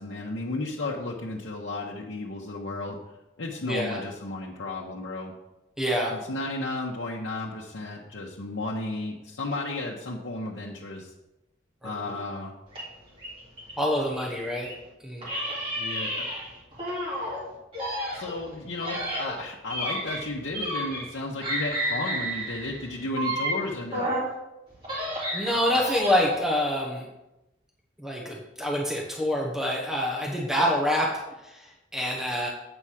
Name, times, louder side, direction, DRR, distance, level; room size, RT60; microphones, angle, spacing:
voice 1, 0.0-3.0 3.4-5.3 6.1-11.1 11.8-12.5 15.8-16.3 18.1-24.2, left 2 dB, 85° left, -4 dB, 1.0 m, -33 dB
voice 2, 3.7-4.0 5.8-6.1 11.8-12.1 13.8-14.7 15.0-15.3 25.3-27.1 28.0-31.1 31.4-32.5, equal, 5° right, -2 dB, 1.0 m, -26 dB
sound 1, 12.7-14.8 15.2-17.4 17.7-21.2 21.4-24.3 24.7-26.4, equal, 30° right, 2.2 m, -32 dB
8.0 x 4.8 x 5.8 m, 0.95 s
head